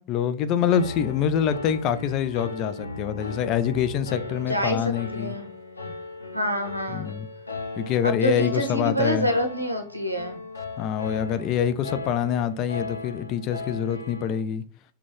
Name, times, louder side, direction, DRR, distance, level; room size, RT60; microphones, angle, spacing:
voice 1, 0.1-5.4 6.9-7.3 7.8-9.3 10.8-14.6, left 8 dB, 35° left, 0.3 m, -25 dB
Piano, 0.7-14.4, left 3 dB, 80° left, 0.6 m, -37 dB
voice 2, 4.5-5.5 6.3-7.1 8.0-10.4, equal, 90° right, 0.6 m, -27 dB
3.7 x 2.2 x 3.2 m
figure-of-eight pair, 90°, 0 cm